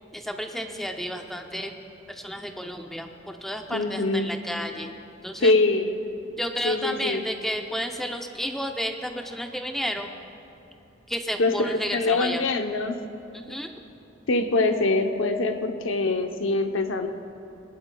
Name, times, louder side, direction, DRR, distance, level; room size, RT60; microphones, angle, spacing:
voice 1, 0.1-1.8 2.1-4.9 5.2-5.5 6.4-10.1 11.1-12.4 13.3-13.7, equal, ahead, 4 dB, 0.5 m, -32 dB
voice 2, 3.7-4.3 5.4-6.0 6.6-7.2 11.4-12.9 14.3-17.1, left 2 dB, 75° left, 6 dB, 0.8 m, -24 dB
20.5 x 11.5 x 2.3 m, 2.9 s
head